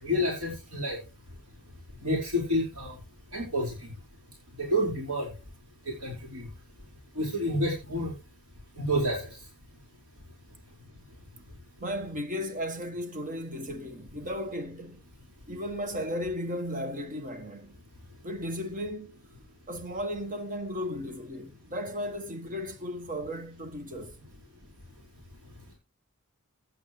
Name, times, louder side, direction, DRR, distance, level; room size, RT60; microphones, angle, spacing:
voice 1, 0.0-1.0 2.0-3.0 3.3-3.7 4.6-5.3 5.8-6.5 7.1-8.1 8.8-9.4, equal, 90° right, 5.0 m, -29 dB
voice 2, 11.8-15.0 15.5-17.8 18.2-19.2 19.7-24.3, equal, 35° right, 1.4 m, -35 dB
16.0 x 9.8 x 3.2 m
head